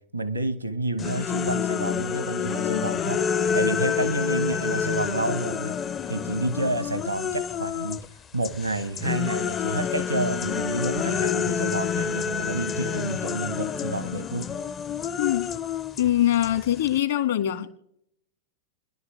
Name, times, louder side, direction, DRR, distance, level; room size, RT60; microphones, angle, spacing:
voice 1, 0.1-5.8 6.1-8.1 8.3-14.5, right 2 dB, 90° right, 1.2 m, -29 dB
sound 1, 1.0-8.1 8.4-17.0, left 7 dB, 25° left, 0.5 m, -28 dB
voice 2, 15.2-15.5 16.0-17.7, left 12 dB, 60° left, 1.8 m, -23 dB
29.0 x 11.0 x 3.2 m
figure-of-eight pair, 90°, 0 cm